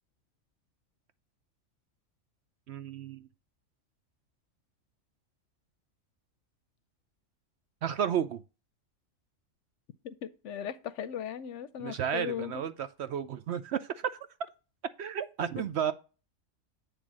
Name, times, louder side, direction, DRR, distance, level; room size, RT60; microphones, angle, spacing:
voice 1, 2.7-3.3 7.8-8.4 11.8-14.2 15.0-15.9, right 8 dB, 65° right, 0.7 m, -32 dB
voice 2, 10.0-12.7, left 9 dB, 70° left, 0.9 m, -38 dB
8.9 x 3.4 x 6.1 m
omnidirectional pair, 1.4 m